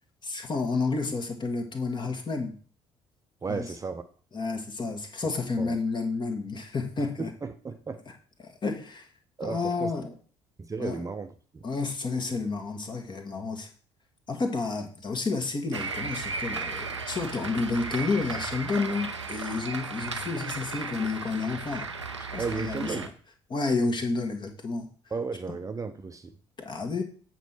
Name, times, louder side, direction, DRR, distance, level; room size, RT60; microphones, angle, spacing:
voice 1, 0.2-2.5 3.5-3.7 4.3-7.3 8.4-9.1 9.4-10.1 10.8-11.0 11.6-13.7 14.3-21.9 22.3-22.9 23.5-24.9 26.6-27.0, left 3 dB, 30° left, 1.7 m, -30 dB
voice 2, 3.4-4.0 5.6-5.8 7.0-8.0 9.4-9.9 10.6-11.6 22.4-23.1 25.1-26.4, right 4 dB, 20° right, 0.7 m, -34 dB
sound 1, 15.7-23.1, right 4 dB, 85° right, 0.5 m, -35 dB
8.1 x 4.4 x 6.2 m
figure-of-eight pair, 50°, 15 cm